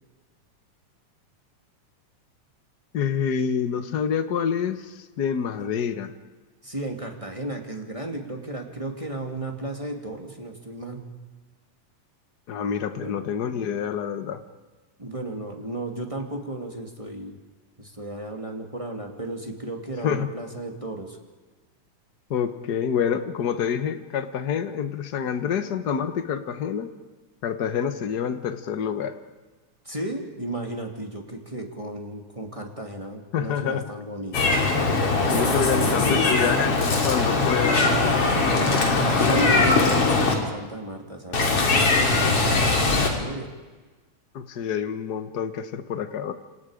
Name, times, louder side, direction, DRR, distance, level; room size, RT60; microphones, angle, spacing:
voice 1, 2.9-6.1 12.5-14.4 20.0-20.3 22.3-26.9 27.4-29.1 33.3-33.8 35.3-36.7 37.0-37.9 44.3-46.3, left 7 dB, 75° left, 9 dB, 0.9 m, -27 dB
voice 2, 6.6-11.1 13.0-13.3 15.0-17.4 17.8-21.2 29.8-34.6 35.3-36.5 39.2-43.5, right 2 dB, 10° right, 2 dB, 2.1 m, -34 dB
Meow, 34.3-40.3 41.3-43.1, left 3 dB, 45° left, 3.9 m, -21 dB
28.5 x 27.0 x 5.1 m, 1.3 s
omnidirectional pair, 3.6 m